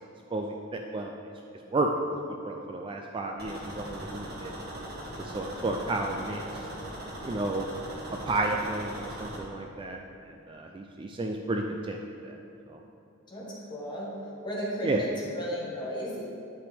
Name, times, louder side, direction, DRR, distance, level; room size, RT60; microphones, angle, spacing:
voice 1, 0.3-1.1 1.7-1.9 2.4-4.5 5.2-6.4 7.2-7.7 8.1-10.0 10.5-12.4 12.7-12.8 14.8-15.0, right 2 dB, 25° right, 2 dB, 0.3 m, -32 dB
sound 1, 3.4-9.4, right 1 dB, 50° right, 1.4 m, -40 dB
voice 2, 5.5-6.0 13.3-14.1 14.4-16.3, equal, 20° left, -6 dB, 1.6 m, -35 dB
9.6 x 5.8 x 3.4 m, 2.8 s
head